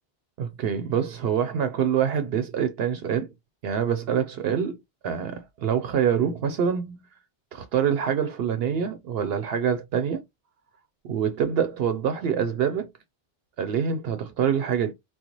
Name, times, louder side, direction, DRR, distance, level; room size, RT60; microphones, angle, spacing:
voice 1, 0.4-3.3 3.6-4.8 5.0-7.0 7.5-10.2 11.0-12.9 13.6-14.9, right 8 dB, 75° right, 0.8 m, -25 dB
3.8 x 2.2 x 2.9 m
omnidirectional pair, 1.0 m